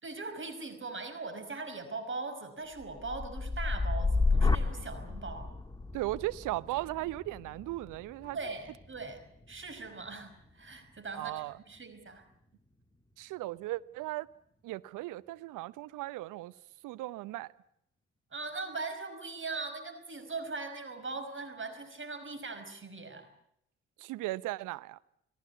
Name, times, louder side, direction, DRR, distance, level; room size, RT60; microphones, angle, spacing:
voice 1, 0.0-5.5 8.2-9.2 9.5-12.2 18.3-23.3, right 3 dB, 35° right, 5.4 m, -40 dB
sound 1, 2.8-10.8 11.3-11.8, left 3 dB, 10° left, 2.0 m, -33 dB
voice 2, 5.9-8.4 11.1-11.6 13.2-14.3 14.6-16.5 16.8-17.5 24.0-25.0, right 18 dB, 65° right, 0.9 m, -37 dB
30.0 x 18.0 x 8.2 m
figure-of-eight pair, 45°, 34 cm